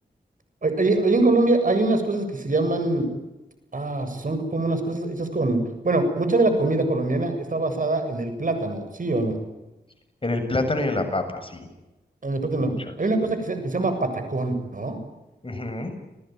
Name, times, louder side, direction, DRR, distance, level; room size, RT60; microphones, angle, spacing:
voice 1, 0.6-3.1 3.7-5.6 5.8-9.4 12.2-12.7 13.0-15.0, right 2 dB, 50° right, 8 dB, 7.4 m, -23 dB
voice 2, 10.2-11.7 12.6-12.7 15.4-15.9, left 2 dB, 30° left, 6 dB, 7.3 m, -27 dB
30.0 x 20.0 x 9.5 m, 1.0 s
cardioid pair, 60°, 18 cm